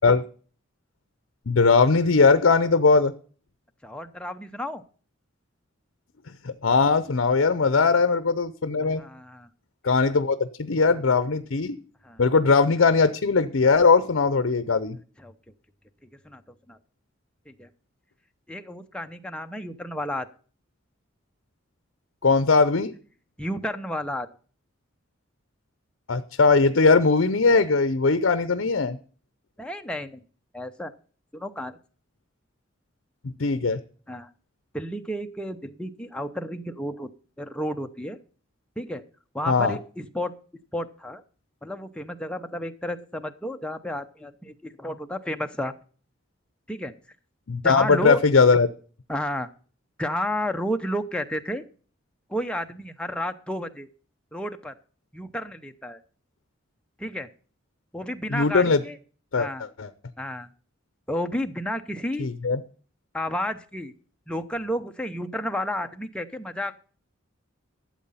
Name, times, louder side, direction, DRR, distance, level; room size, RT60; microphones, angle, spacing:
voice 1, 1.5-3.1 6.4-9.0 9.8-11.8 12.2-15.0 22.2-22.9 26.1-29.0 33.4-33.8 39.5-39.8 47.5-48.7 58.3-58.8 59.3-59.9 62.2-62.6, left 4 dB, 65° left, 13 dB, 0.6 m, -20 dB
voice 2, 3.8-4.8 7.8-8.0 9.0-9.5 12.0-12.2 15.2-15.3 16.2-16.4 16.7-16.8 17.5-17.7 18.5-20.3 23.4-24.3 29.6-30.2 30.5-30.9 31.3-31.8 34.1-34.3 34.7-37.1 37.4-38.2 38.8-39.0 39.3-40.3 40.7-41.2 41.6-45.7 46.7-46.9 47.6-48.2 49.1-49.5 50.0-51.6 52.3-53.9 54.3-54.7 55.1-56.0 57.0-57.3 57.9-59.0 59.4-59.6 60.2-60.5 61.1-62.3 63.1-63.9 64.3-66.8, equal, 5° left, 5 dB, 0.7 m, -31 dB
13.0 x 7.5 x 5.5 m, 0.41 s
head